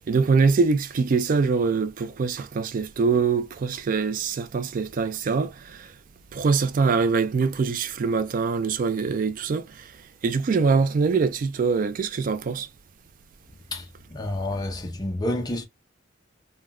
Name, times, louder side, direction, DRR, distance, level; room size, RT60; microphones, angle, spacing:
voice 1, 0.1-5.9 6.3-9.9 10.2-12.7, right 4 dB, 45° right, 0.3 m, -23 dB
voice 2, 13.7-15.6, left 1 dB, 20° left, 0.5 m, -29 dB
3.5 x 2.1 x 2.2 m
head